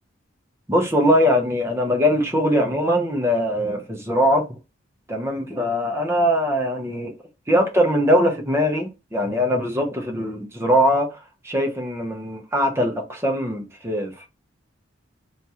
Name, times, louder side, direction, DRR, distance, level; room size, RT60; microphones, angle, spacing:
voice 1, 0.7-4.4 5.1-7.1 7.5-11.1 11.4-14.3, equal, 15° right, 0.6 m, -21 dB
2.9 x 2.3 x 2.8 m
head